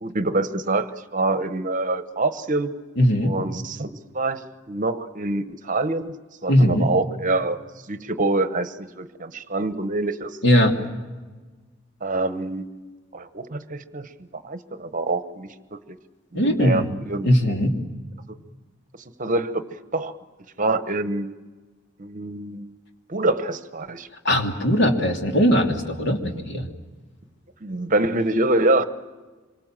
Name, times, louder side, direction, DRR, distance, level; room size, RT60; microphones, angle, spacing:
voice 1, 0.0-2.7 3.2-4.4 4.7-6.2 6.4-7.6 7.9-10.4 12.0-12.7 13.1-16.0 16.3-17.5 18.3-18.4 19.2-19.6 19.9-20.1 20.6-21.3 22.0-22.7 23.1-24.1 27.6-28.8, right 2 dB, 40° right, 11 dB, 1.1 m, -25 dB
voice 2, 3.0-3.4 6.5-6.9 10.4-10.8 16.3-17.0 17.2-17.8 24.2-26.7, equal, 65° left, 3 dB, 2.9 m, -19 dB
26.0 x 23.5 x 7.5 m, 1.3 s
head